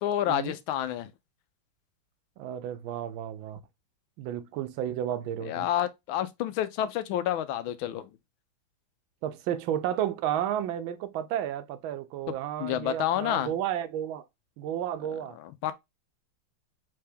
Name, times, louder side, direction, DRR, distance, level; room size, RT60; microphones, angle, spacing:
voice 1, 0.0-1.1 5.4-8.1 12.6-13.5 15.6-15.7, left 11 dB, 85° left, 1.4 m, -29 dB
voice 2, 2.4-3.6 4.2-5.7 9.2-14.2 14.6-15.4, right 10 dB, 85° right, 1.4 m, -32 dB
3.7 x 3.3 x 3.3 m
omnidirectional pair, 2.2 m